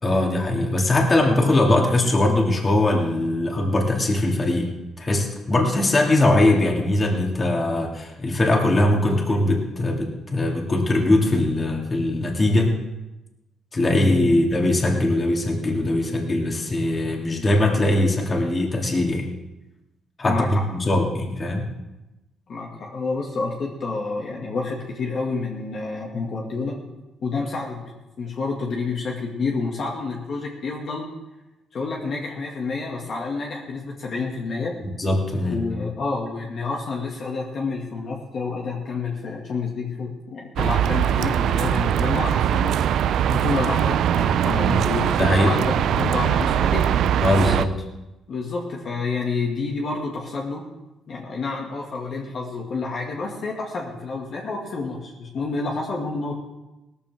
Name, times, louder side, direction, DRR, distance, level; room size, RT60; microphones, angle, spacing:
voice 1, 0.0-4.7 5.0-12.7 13.7-19.3 20.2-21.7 35.0-35.6 45.2-45.5 45.9-46.1 47.2-47.7, left 1 dB, 30° left, 0 dB, 2.7 m, -21 dB
voice 2, 20.2-20.6 22.5-26.8 27.2-31.1 31.7-34.7 35.4-42.8 43.3-45.1 45.4-46.9 48.3-50.7 51.1-56.4, left 4 dB, 55° left, -2 dB, 2.2 m, -29 dB
sound 1, 40.6-47.6, right 10 dB, 75° right, 0.5 m, -21 dB
17.5 x 14.0 x 3.7 m, 1.0 s
cardioid pair, 90°, 0 cm